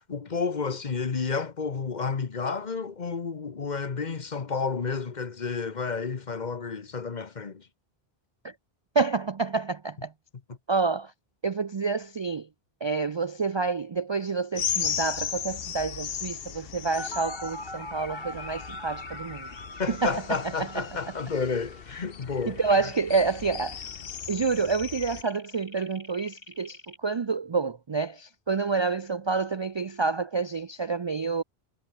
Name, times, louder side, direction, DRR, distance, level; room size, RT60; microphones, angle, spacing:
voice 1, 0.0-7.7 19.8-22.6, left 5 dB, 45° left, 1.2 m, -31 dB
voice 2, 8.9-10.1 10.7-11.1 11.4-12.5 12.8-19.5 19.9-20.8 22.5-23.8 24.3-31.4, right 4 dB, 40° right, 0.4 m, -28 dB
sound 1, 14.6-25.2, left 8 dB, 65° left, 1.1 m, -36 dB
sound 2, 17.0-27.0, left 1 dB, 25° left, 3.4 m, -43 dB
omnidirectional pair, 1.1 m